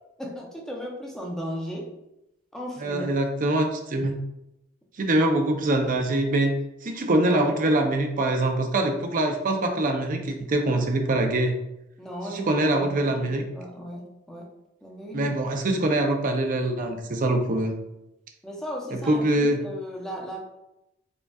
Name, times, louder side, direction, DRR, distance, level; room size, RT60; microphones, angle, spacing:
voice 1, 0.2-1.9 2.5-3.1 12.0-13.1 13.4-14.5 14.8-15.3 18.4-20.4, equal, ahead, -2 dB, 0.6 m, -36 dB
voice 2, 2.8-4.1 5.0-6.5 6.8-11.6 12.3-13.4 15.1-17.8 18.9-19.6, right 1 dB, 45° right, 4 dB, 0.5 m, -24 dB
5.0 x 2.3 x 2.3 m, 0.88 s
head